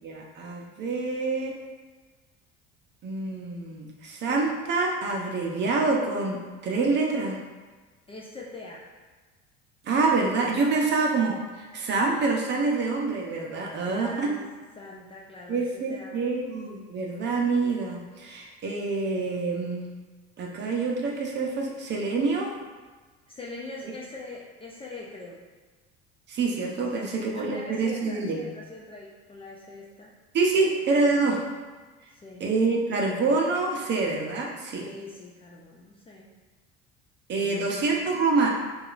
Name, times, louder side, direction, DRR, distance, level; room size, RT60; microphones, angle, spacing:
voice 1, 0.0-1.5 3.0-7.4 9.8-11.3 11.7-14.3 15.5-19.9 20.4-22.5 23.8-23.9 26.3-28.4 30.3-31.4 32.4-34.8 37.3-38.5, right 3 dB, 40° right, 0 dB, 0.7 m, -26 dB
voice 2, 8.1-8.9 13.8-16.2 23.3-25.4 26.9-30.1 30.6-30.7 31.1-31.3 32.1-32.4 34.8-36.3 37.4-37.8 38.1-38.2, left 2 dB, 20° left, -3 dB, 0.4 m, -42 dB
4.7 x 2.4 x 2.4 m, 1.3 s
cardioid pair, 120°, 29 cm